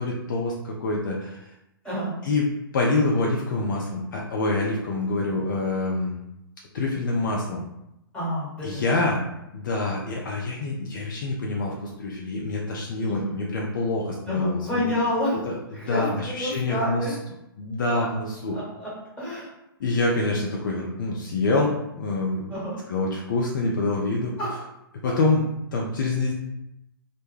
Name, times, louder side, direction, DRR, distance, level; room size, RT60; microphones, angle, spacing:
voice 1, 0.0-1.4 2.2-2.5 2.7-6.2 6.7-7.6 8.6-9.2 9.5-14.9 15.5-17.2 17.6-18.6 19.8-22.6 22.9-24.3 25.0-25.4 25.7-26.3, left 2 dB, 55° left, -2 dB, 0.5 m, -26 dB
voice 2, 8.1-8.8 13.1-13.4 14.3-15.4 15.7-17.1 17.9-18.0 18.5-18.9 19.2-19.5 22.5-22.8 24.4-24.5, left 1 dB, 10° left, -9 dB, 1.3 m, -29 dB
2.2 x 2.1 x 3.2 m, 0.86 s
figure-of-eight pair, 120°, 13 cm